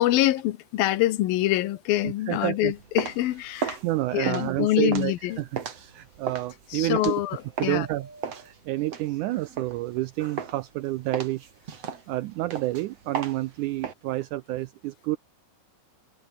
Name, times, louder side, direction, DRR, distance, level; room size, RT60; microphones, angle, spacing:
voice 1, 0.0-3.8 4.1-5.4 6.7-7.9, left 15 dB, 80° left, 2.8 m, -25 dB
voice 2, 2.3-2.7 3.8-7.1 7.6-15.2, right 17 dB, 80° right, 1.8 m, -29 dB
sound 1, 2.7-9.7 10.2-11.1 11.7-13.3, right 2 dB, 20° right, 5.1 m, -55 dB
sound 2, 2.7-7.9 8.2-10.1 10.4-10.8 11.1-13.9, right 7 dB, 45° right, 3.3 m, -35 dB
omnidirectional pair, 4.2 m